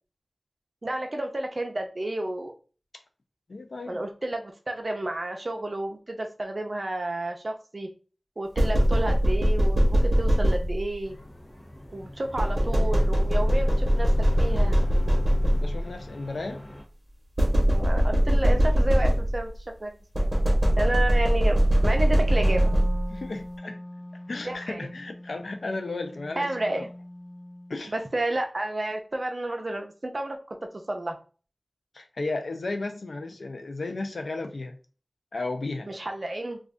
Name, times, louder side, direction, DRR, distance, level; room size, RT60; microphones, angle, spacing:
voice 1, 0.8-2.5 3.9-7.9 8.4-11.2 11.9-14.1 14.4-14.8 17.7-19.5 19.8-19.9 20.2-20.3 20.8-22.7 24.4-24.9 26.4-26.9 27.9-30.6 30.9-31.2 35.9-36.6, right 1 dB, 50° right, 0.6 m, -31 dB
voice 2, 3.5-4.0 15.6-16.7 23.1-23.8 24.3-26.9 27.7-27.9 31.9-34.8 35.3-35.9, left 3 dB, 80° left, 0.5 m, -34 dB
sound 1, 8.6-11.0 12.4-15.9 17.4-19.6 20.1-23.2, equal, 35° right, 1.1 m, -22 dB
sound 2, 11.0-16.8, left 1 dB, 35° left, 0.8 m, -43 dB
Wind instrument woodwind instrument, 22.1-27.8, left 1 dB, 10° left, 0.3 m, -41 dB
2.5 x 2.4 x 3.5 m
wide cardioid pair, 65°, 0 cm